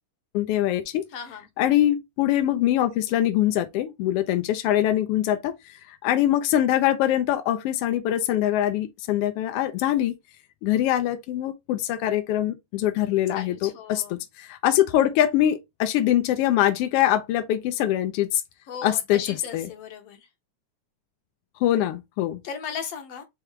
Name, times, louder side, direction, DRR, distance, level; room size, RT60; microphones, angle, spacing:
voice 1, 0.3-1.1 1.6-10.1 10.6-18.4 18.8-19.7 21.6-22.4, left 12 dB, 85° left, 1.3 m, -23 dB
voice 2, 1.1-1.5 12.9-13.1 13.3-14.2 18.7-20.3 22.4-23.2, left 7 dB, 65° left, 1.9 m, -36 dB
4.7 x 3.5 x 3.1 m
omnidirectional pair, 3.3 m